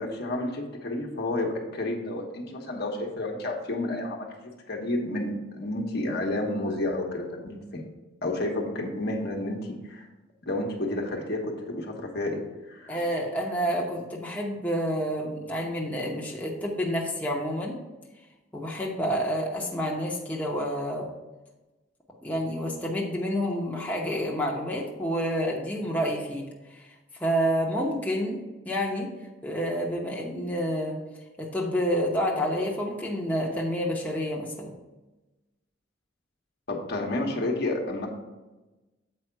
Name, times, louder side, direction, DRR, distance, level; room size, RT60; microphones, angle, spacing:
voice 1, 0.0-7.8 8.2-10.1 10.5-12.4 12.7-13.0 36.7-38.1, left 1 dB, 55° left, 1 dB, 1.2 m, -30 dB
voice 2, 12.9-17.8 18.5-21.1 22.2-26.8 27.2-29.1 29.4-31.0 31.4-34.7, equal, 10° left, -3 dB, 0.9 m, -29 dB
7.8 x 4.9 x 4.6 m, 1.1 s
head